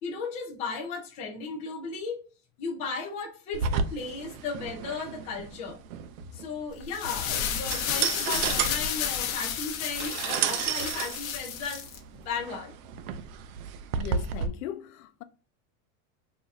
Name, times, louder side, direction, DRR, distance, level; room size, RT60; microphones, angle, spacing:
voice 1, 0.0-2.2 2.6-5.8 6.3-11.9 12.3-12.7, left 4 dB, 15° left, 0.4 m, -35 dB
sound 1, 3.5-14.5, right 7 dB, 75° right, 0.6 m, -32 dB
sound 2, 6.8-12.0, left 8 dB, 70° left, 0.9 m, -31 dB
voice 2, 13.9-15.2, left 10 dB, 90° left, 0.6 m, -39 dB
4.8 x 2.6 x 2.3 m
supercardioid pair, 180°, 42 cm